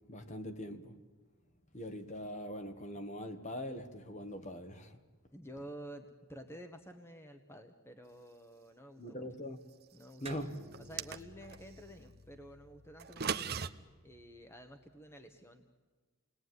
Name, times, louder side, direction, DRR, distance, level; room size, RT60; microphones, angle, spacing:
voice 1, 0.1-1.0 1.7-5.0 9.0-9.6 10.2-10.5, equal, 30° left, 1.7 m, -42 dB
voice 2, 5.3-9.3 9.9-10.4 10.8-13.5 14.0-15.6, equal, 10° left, 1.3 m, -51 dB
sound 1, 10.3-15.0, right 1 dB, 25° right, 1.5 m, -56 dB
sound 2, 10.7-11.6 13.0-13.7, right 6 dB, 45° right, 0.9 m, -37 dB
29.0 x 20.5 x 9.5 m
head